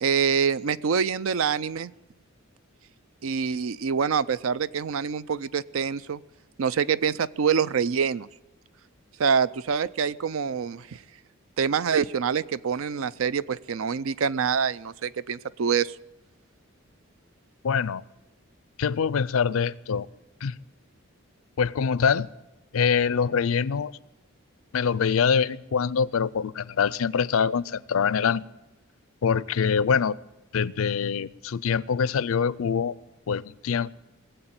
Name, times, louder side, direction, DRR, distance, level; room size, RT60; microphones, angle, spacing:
voice 1, 0.0-1.9 3.2-6.2 6.6-8.3 9.2-11.0 11.6-16.0, right 6 dB, 70° right, 17 dB, 0.5 m, -25 dB
voice 2, 17.6-18.0 18.8-20.1 20.4-20.6 21.6-22.3 22.7-23.9 24.7-28.5 29.2-30.2 30.5-32.9 33.3-33.9, left 6 dB, 75° left, 20 dB, 0.4 m, -24 dB
20.0 x 7.8 x 8.8 m, 0.98 s
head